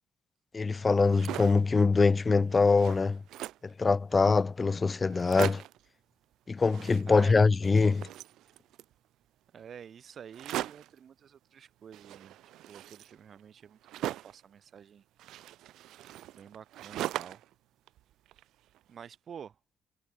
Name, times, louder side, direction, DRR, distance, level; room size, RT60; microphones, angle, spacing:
voice 1, 0.5-3.2 3.8-5.6 6.5-8.1, left 4 dB, 30° left, 0.7 m, -24 dB
sound 1, 0.9-1.7 2.2-2.3 2.5-3.7 4.4-4.5 4.7-4.8 5.1-5.9 6.6-7.4 7.6-8.9 10.3-11.0 11.9-14.4 15.2-17.5 17.9-18.8, right 14 dB, 85° right, 1.3 m, -40 dB
voice 2, 7.1-7.4 9.5-12.4 12.7-15.0 16.4-17.4 18.9-19.6, right 8 dB, 55° right, 1.9 m, -49 dB
cardioid pair, 90°, 0 cm